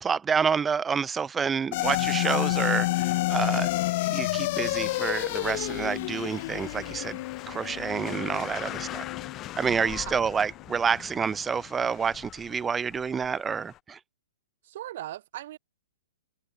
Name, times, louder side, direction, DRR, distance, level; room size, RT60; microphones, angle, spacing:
voice 1, 0.0-3.7 4.0-7.2 7.5-9.1 9.6-14.0, right 6 dB, 15° right, 0.6 m, -28 dB
sound 1, 1.7-10.2, left 19 dB, 45° left, 2.1 m, -29 dB
sound 2, 5.1-13.8, left 13 dB, 25° left, 2.5 m, -43 dB
voice 2, 14.6-15.6, right 13 dB, 50° right, 2.5 m, -38 dB
figure-of-eight pair, 110°, 0 cm